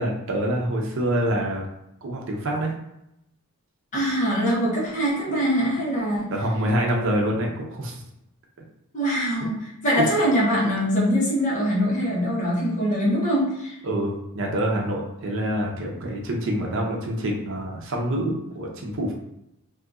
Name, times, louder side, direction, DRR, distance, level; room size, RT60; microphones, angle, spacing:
voice 1, 0.0-1.7 2.0-2.7 6.3-8.0 9.4-9.5 9.9-10.2 13.8-19.1, right 1 dB, 60° right, 0 dB, 0.7 m, -26 dB
voice 2, 3.9-6.3 8.9-13.8, equal, 35° left, -5 dB, 1.0 m, -23 dB
2.7 x 2.5 x 3.5 m, 0.83 s
head